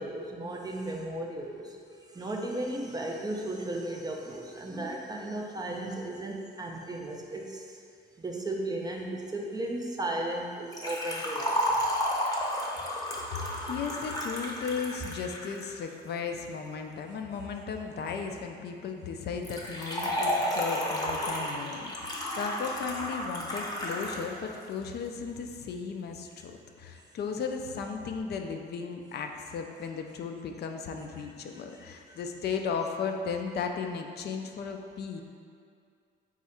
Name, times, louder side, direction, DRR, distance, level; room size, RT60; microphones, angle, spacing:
voice 1, 0.0-1.8 2.1-7.8 8.2-11.8, right 1 dB, 20° right, 0 dB, 0.4 m, -35 dB
Liquid, 10.7-15.7 19.4-24.3 24.5-24.6 25.5-25.6, equal, 20° left, 0.7 m, -32 dB
voice 2, 13.3-26.5 26.8-35.2, left 5 dB, 55° left, 4 dB, 0.4 m, -35 dB
4.1 x 2.4 x 4.2 m, 2.3 s
cardioid pair, 90°, 20 cm